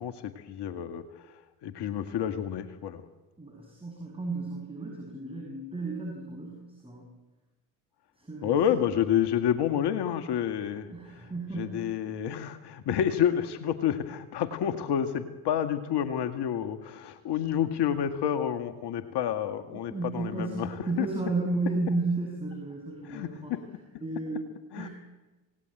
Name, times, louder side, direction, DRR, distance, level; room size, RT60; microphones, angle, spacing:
voice 1, 0.0-3.0 8.4-11.3 11.6-21.1 23.0-23.6 24.7-24.9, left 9 dB, 55° left, 9 dB, 2.0 m, -29 dB
voice 2, 3.4-7.1 8.2-8.6 10.9-11.8 19.7-23.5 24.0-24.4 24.8-24.9, right 3 dB, 10° right, 1 dB, 6.9 m, -33 dB
27.5 x 18.0 x 9.0 m, 1.2 s
hypercardioid pair, 60°, 49 cm